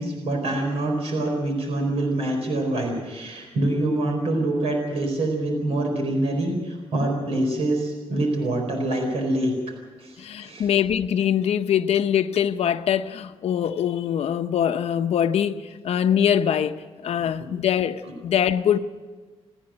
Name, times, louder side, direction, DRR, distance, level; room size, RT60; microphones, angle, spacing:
voice 1, 0.0-9.5 10.0-10.7, right 1 dB, 75° right, 4.4 m, -25 dB
voice 2, 10.2-18.8, left 9 dB, 75° left, 0.8 m, -23 dB
29.5 x 9.9 x 9.0 m
wide cardioid pair, 180°, 11 cm